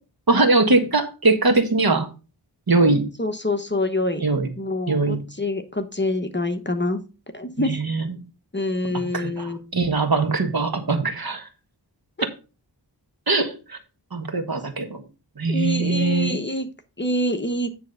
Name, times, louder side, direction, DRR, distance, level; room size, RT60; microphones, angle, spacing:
voice 1, 0.3-2.1 2.7-3.1 4.2-4.5 4.9-5.2 7.6-8.2 9.1-11.5 13.3-13.8 14.1-15.0 15.4-16.4, right 3 dB, 55° right, 6 dB, 1.5 m, -21 dB
voice 2, 3.2-4.2 4.6-7.0 7.3-7.7 8.5-9.6 15.5-16.7 17.0-17.7, left 1 dB, 25° left, 7 dB, 1.1 m, -26 dB
9.6 x 3.5 x 6.7 m, 0.32 s
wide cardioid pair, 65°, 44 cm